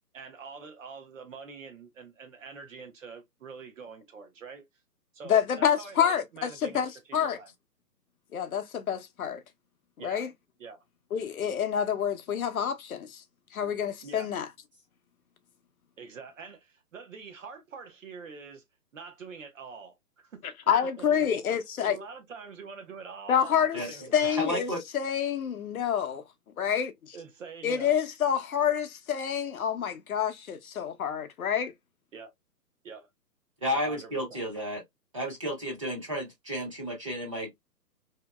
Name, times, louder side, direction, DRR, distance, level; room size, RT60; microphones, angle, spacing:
voice 1, 0.1-4.6 5.1-7.5 10.0-10.3 10.6-10.8 14.0-14.3 16.0-16.6 16.9-18.6 18.9-20.4 21.0-21.3 21.8-24.4 27.1-28.0 32.1-32.3 32.8-33.1 33.7-34.4, right 5 dB, 50° right, 0.8 m, -45 dB
voice 2, 5.2-7.4 8.3-9.4 10.0-10.3 11.1-13.2 13.5-14.5 20.4-22.0 23.3-26.2 26.6-27.2 27.6-31.7, left 8 dB, 60° left, 0.6 m, -28 dB
voice 3, 23.7-24.8 33.6-34.8 35.1-37.5, equal, 20° right, 0.7 m, -32 dB
2.8 x 2.6 x 2.2 m
hypercardioid pair, 165°, 49 cm